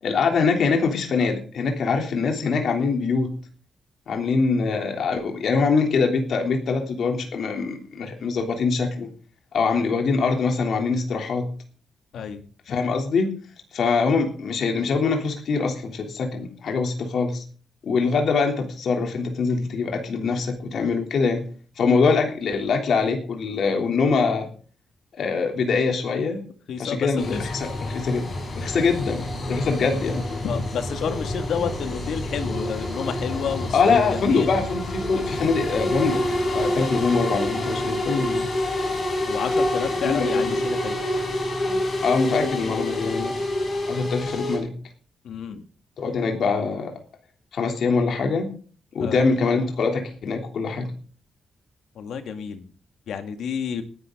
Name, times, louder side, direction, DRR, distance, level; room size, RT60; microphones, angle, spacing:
voice 1, 0.0-3.3 4.1-9.1 9.5-11.5 12.7-13.3 13.7-17.4 17.8-21.5 21.8-24.5 25.1-26.4 26.8-30.2 33.7-36.2 36.5-38.5 40.0-40.6 42.0-43.4 43.9-44.7 46.0-47.0 47.5-48.5 48.9-50.9, left 4 dB, 55° left, 3 dB, 3.2 m, -23 dB
voice 2, 12.1-12.4 26.7-27.5 30.4-34.5 39.3-41.0 45.2-45.6 49.0-49.2 52.0-52.7 53.1-53.8, left 7 dB, 75° left, 7 dB, 2.1 m, -30 dB
sound 1, 27.2-44.6, left 1 dB, 30° left, 6.0 m, -27 dB
19.0 x 11.5 x 3.9 m, 0.41 s
wide cardioid pair, 175°, 0 cm